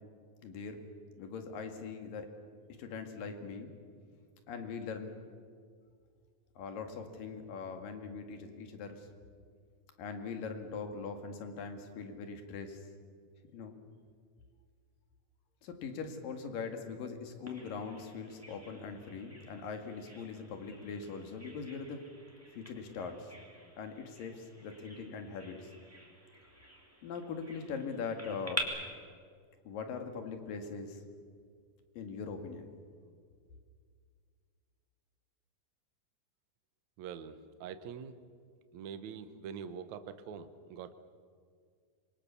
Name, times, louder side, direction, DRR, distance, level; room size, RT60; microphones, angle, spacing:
voice 1, 0.4-0.8 1.2-2.3 2.7-3.7 4.5-5.2 6.6-9.1 10.0-12.8 13.5-13.8 15.6-22.0 22.5-23.3 23.8-25.7 27.0-28.7 29.7-31.0 32.0-32.7, left 5 dB, 70° left, 6 dB, 3.7 m, -41 dB
Bird vocalization bird call bird song, 17.5-28.6, right 1 dB, 5° right, 3.1 m, -47 dB
voice 2, 37.0-38.2 38.7-40.9, right 7 dB, 65° right, 10 dB, 2.1 m, -44 dB
26.5 x 24.0 x 7.0 m, 2.1 s
omnidirectional pair, 4.2 m